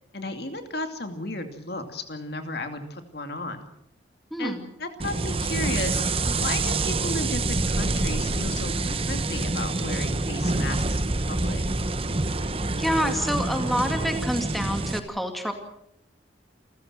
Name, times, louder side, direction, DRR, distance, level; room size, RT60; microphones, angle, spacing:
voice 1, 0.1-3.7 4.4-11.6, left 2 dB, 55° left, 6 dB, 2.5 m, -34 dB
voice 2, 4.3-4.7 12.8-15.5, equal, ahead, 4 dB, 2.2 m, -27 dB
sound 1, 5.0-15.0, right 2 dB, 30° right, 1.0 m, -26 dB
28.5 x 15.0 x 7.6 m, 0.77 s
head